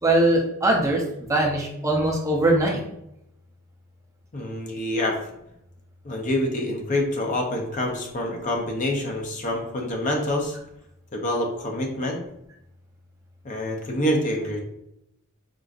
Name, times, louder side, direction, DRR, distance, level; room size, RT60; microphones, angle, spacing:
voice 1, 0.0-1.0 1.3-2.8, right 1 dB, 15° right, -1 dB, 0.5 m, -21 dB
voice 2, 4.3-5.2 6.0-10.6 11.1-12.2 13.4-14.6, left 1 dB, 35° left, 1 dB, 0.5 m, -26 dB
3.7 x 2.4 x 2.4 m, 0.81 s
head